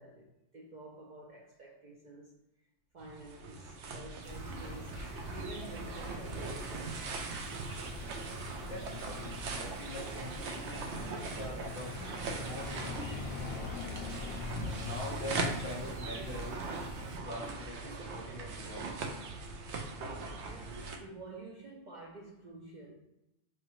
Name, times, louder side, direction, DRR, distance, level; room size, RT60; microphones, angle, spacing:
voice 1, 0.0-2.3 2.9-5.0 5.3-7.0 11.8-11.9 17.7-17.9 20.4-22.9, right 2 dB, 50° right, -3 dB, 0.6 m, -50 dB
sound 1, 3.0-21.0, right 3 dB, 85° right, 0.9 m, -40 dB
sound 2, 4.2-17.2, left 4 dB, 65° left, 0.7 m, -44 dB
voice 2, 8.6-12.0 12.4-13.3 14.8-16.7 17.2-19.0, equal, 30° left, -4 dB, 1.0 m, -44 dB
4.7 x 2.5 x 3.0 m, 0.91 s
omnidirectional pair, 1.1 m